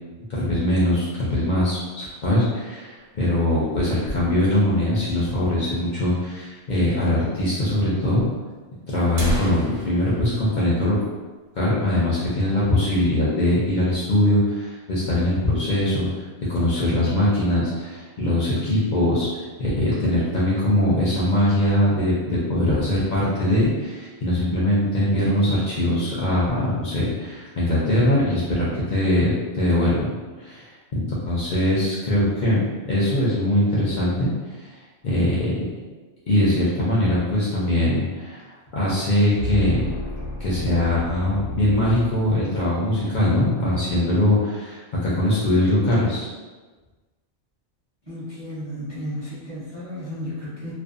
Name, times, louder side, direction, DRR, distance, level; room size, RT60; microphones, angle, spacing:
voice 1, 0.3-8.3 8.9-11.0 11.5-16.2 16.5-30.1 30.4-34.3 34.6-34.7 35.0-35.5 36.3-38.4 38.7-39.8 40.4-46.3, left 1 dB, 55° left, -7 dB, 0.6 m, -22 dB
sound 1, 3.0-4.8 5.1-5.2 5.4-5.5 6.2-6.3 7.2-7.3 7.7-7.8 8.5-8.6 8.9-11.5 11.9-12.0 12.4-12.7 13.1-13.7, right 1 dB, 85° right, 1.0 m, -33 dB
sound 2, 39.3-42.8, left 1 dB, 85° left, 1.0 m, -31 dB
voice 2, 48.1-50.7, left 1 dB, 30° right, -10 dB, 0.6 m, -33 dB
2.5 x 2.1 x 2.4 m, 1.3 s
omnidirectional pair, 1.2 m